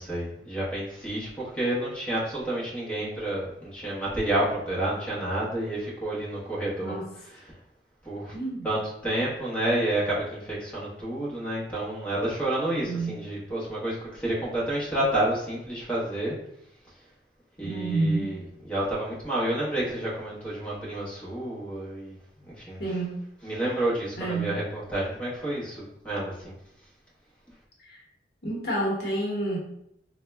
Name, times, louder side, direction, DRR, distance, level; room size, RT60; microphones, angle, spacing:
voice 1, 0.0-7.0 8.0-8.3 8.6-16.4 17.6-22.8 23.4-26.5, right 1 dB, 10° left, -7 dB, 1.0 m, -29 dB
voice 2, 8.3-8.7 12.8-13.2 17.6-18.3 22.8-23.2 24.2-24.5 27.9-28.0 28.4-29.6, right 2 dB, 60° left, -3 dB, 0.9 m, -29 dB
3.5 x 2.2 x 3.3 m, 0.74 s
head